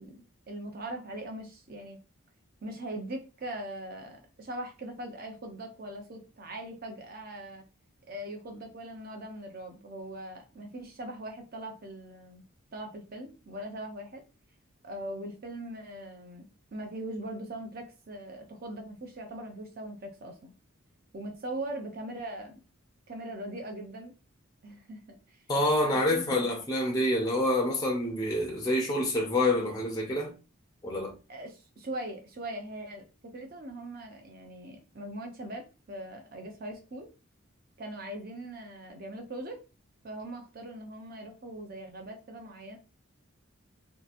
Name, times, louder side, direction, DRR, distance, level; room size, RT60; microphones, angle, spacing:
voice 1, 0.0-2.0 2.6-7.6 8.1-12.4 12.7-14.2 14.8-16.4 16.7-20.5 21.1-22.5 23.1-24.1 24.6-25.4 25.8-26.5 31.3-33.0 33.3-37.1 37.8-39.6 40.0-42.8, right 1 dB, 45° right, 0.6 m, -41 dB
voice 2, 25.5-30.3 30.8-31.1, left 1 dB, 20° left, 0.5 m, -27 dB
2.8 x 2.4 x 2.5 m
head